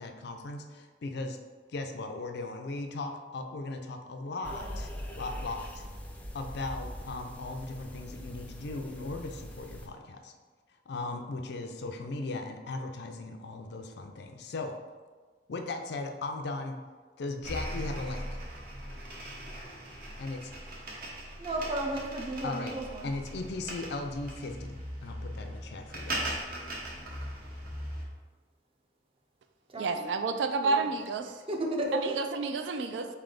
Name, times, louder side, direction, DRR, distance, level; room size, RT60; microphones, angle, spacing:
voice 1, 0.0-1.4 1.7-4.9 5.1-5.8 6.3-10.3 10.9-14.7 15.5-16.8 17.2-18.3 20.2-20.5 22.4-22.7 23.0-24.7 25.0-26.4, left 2 dB, 65° left, 5 dB, 0.4 m, -37 dB
sound 1, 4.4-9.9, equal, 10° left, 0.4 m, -42 dB
sound 2, 17.4-28.0, right 1 dB, 55° right, 0.9 m, -39 dB
voice 2, 21.4-23.1 29.7-30.1 30.6-30.9 31.2-32.3, right 1 dB, 30° right, 0 dB, 0.6 m, -34 dB
voice 3, 29.8-31.2 32.4-33.1, right 4 dB, 80° right, 7 dB, 0.4 m, -29 dB
4.3 x 3.3 x 3.8 m, 1.4 s
head